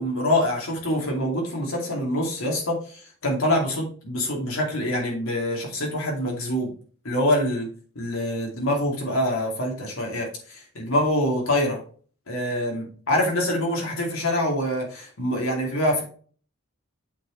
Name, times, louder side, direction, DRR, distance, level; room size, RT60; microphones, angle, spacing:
voice 1, 0.0-6.7 7.0-7.7 7.9-11.8 12.3-16.0, left 1 dB, 80° left, -1 dB, 2.6 m, -25 dB
8.5 x 4.8 x 3.2 m, 0.43 s
head